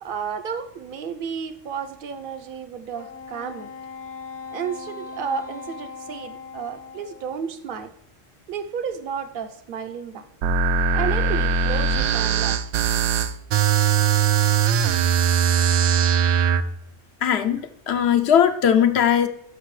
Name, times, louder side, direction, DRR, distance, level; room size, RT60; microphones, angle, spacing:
voice 1, 0.0-3.7 4.5-7.9 8.5-10.3 10.9-12.6, right 7 dB, 55° right, 8 dB, 0.9 m, -32 dB
Wind instrument woodwind instrument, 2.9-7.5, left 5 dB, 20° left, 0.4 m, -39 dB
sound 1, 10.4-16.6, right 7 dB, 80° right, 0.9 m, -20 dB
voice 2, 17.2-17.6 17.9-19.3, left 9 dB, 70° left, 9 dB, 0.9 m, -18 dB
13.0 x 5.3 x 3.2 m, 0.76 s
omnidirectional pair, 1.2 m